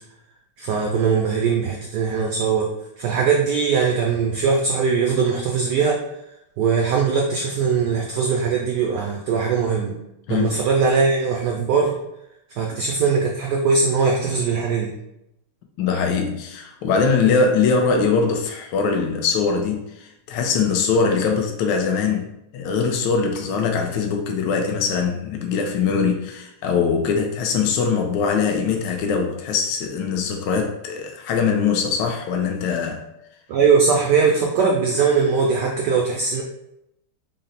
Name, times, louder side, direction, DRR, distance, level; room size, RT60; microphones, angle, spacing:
voice 1, 0.6-2.7 3.0-6.0 6.6-9.9 10.3-12.0 12.5-14.9 33.5-36.4, right 5 dB, 90° right, 0 dB, 0.9 m, -20 dB
voice 2, 15.8-33.0, left 5 dB, 75° left, 3 dB, 1.1 m, -22 dB
4.0 x 2.0 x 3.9 m, 0.83 s
omnidirectional pair, 2.3 m